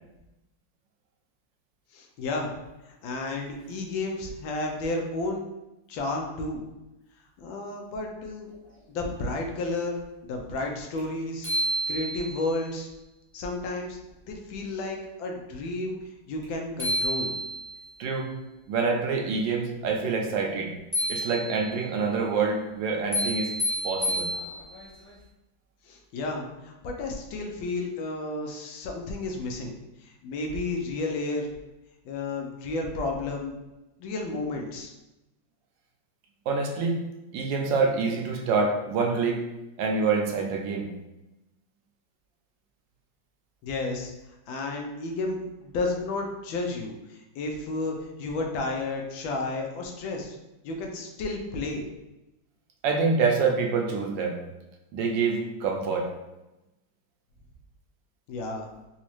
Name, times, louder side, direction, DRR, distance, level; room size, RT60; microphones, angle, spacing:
voice 1, 1.9-2.5 2.8-5.4 5.9-6.6 7.4-8.5 8.9-11.5 11.9-12.9 13.3-14.0 14.3-16.0 16.3-17.3 25.9-29.7 30.0-31.5 32.0-33.6 34.0-34.9 43.6-44.1 44.5-50.4 50.6-51.8 58.3-58.7, left 2 dB, 80° left, 2 dB, 1.3 m, -32 dB
sound 1, 11.0-11.1 11.4-12.5 16.4-16.5 16.8-17.9 20.9-21.8 23.1-24.9, equal, 15° left, 0.5 m, -29 dB
voice 2, 18.0-18.3 18.7-20.7 21.1-23.5 23.8-24.3 36.5-37.0 37.3-39.4 39.8-40.9 52.8-54.4 54.9-56.1, right 4 dB, 75° right, 1 dB, 1.2 m, -26 dB
4.1 x 2.3 x 3.0 m, 0.98 s
omnidirectional pair, 2.1 m